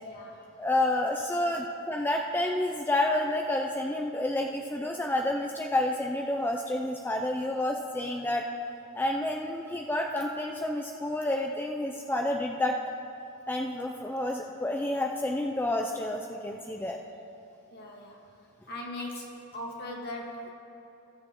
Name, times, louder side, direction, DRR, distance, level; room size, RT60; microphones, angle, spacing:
voice 1, 0.0-0.4 17.7-18.3 18.7-20.5, left 1 dB, 50° left, -1 dB, 1.6 m, -40 dB
voice 2, 0.6-8.4 8.9-12.8 13.5-17.0, left 1 dB, 10° left, 2 dB, 0.4 m, -29 dB
18.5 x 7.4 x 2.9 m, 2.8 s
head